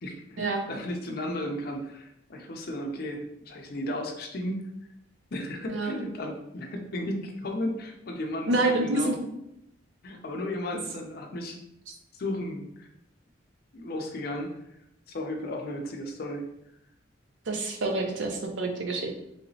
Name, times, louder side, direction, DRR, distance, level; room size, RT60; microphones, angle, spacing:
voice 1, 0.0-4.7 5.3-9.1 10.0-11.6 12.1-12.9 13.7-14.6 15.1-16.4, left 1 dB, 55° left, 3 dB, 0.5 m, -34 dB
voice 2, 8.5-9.1 17.5-19.1, right 2 dB, 75° right, 2 dB, 0.6 m, -27 dB
3.2 x 2.9 x 2.7 m, 0.79 s
head